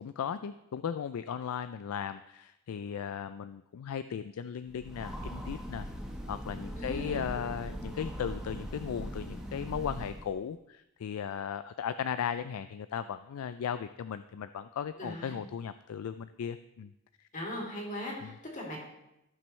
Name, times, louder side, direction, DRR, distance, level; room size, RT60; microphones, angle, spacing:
voice 1, 0.0-5.9 6.3-16.9 17.2-17.3 18.2-18.3, left 8 dB, 90° left, 12 dB, 0.3 m, -37 dB
Train, 4.7-10.4, equal, 5° right, 0.9 m, -40 dB
voice 2, 6.8-7.2 15.0-15.4 17.3-18.8, equal, 35° left, -2 dB, 2.6 m, -39 dB
16.5 x 6.1 x 3.2 m, 0.88 s
head